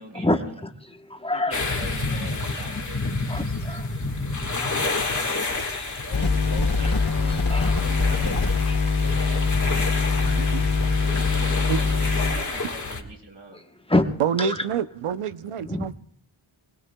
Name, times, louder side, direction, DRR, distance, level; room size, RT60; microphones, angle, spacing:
voice 1, 0.1-1.6 3.3-4.1 4.6-6.0 7.5-7.8 8.7-9.3 9.9-10.3 11.4-11.6 13.5-14.0 14.4-14.6 15.7-15.9, left 2 dB, 10° left, 1.0 m, -29 dB
voice 2, 1.3-3.1 6.0-7.4 7.8-8.5 9.2-9.5 11.3-13.6, right 1 dB, 55° right, 3.8 m, -41 dB
sound 1, 1.5-13.0, left 3 dB, 35° left, 1.6 m, -29 dB
sound 2, 6.1-12.3, left 4 dB, 60° left, 2.9 m, -23 dB
voice 3, 10.3-10.7 11.7-11.8 14.2-15.9, right 7 dB, 90° right, 0.7 m, -27 dB
25.0 x 19.0 x 2.2 m
wide cardioid pair, 110°, 50 cm